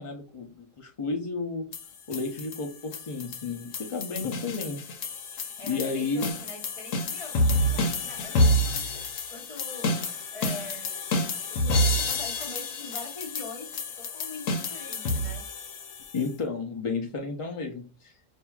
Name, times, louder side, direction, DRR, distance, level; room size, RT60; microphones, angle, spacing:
voice 1, 0.0-1.7 2.1-4.8 5.6-6.3 16.1-18.3, left 4 dB, 55° left, 1 dB, 0.3 m, -32 dB
sound 1, 1.7-16.3, left 1 dB, 70° left, 1.0 m, -29 dB
voice 2, 5.3-9.9 10.3-11.1 11.5-15.4, left 3 dB, 30° left, 1 dB, 0.8 m, -43 dB
5.7 x 2.6 x 2.3 m, 0.37 s
omnidirectional pair, 1.4 m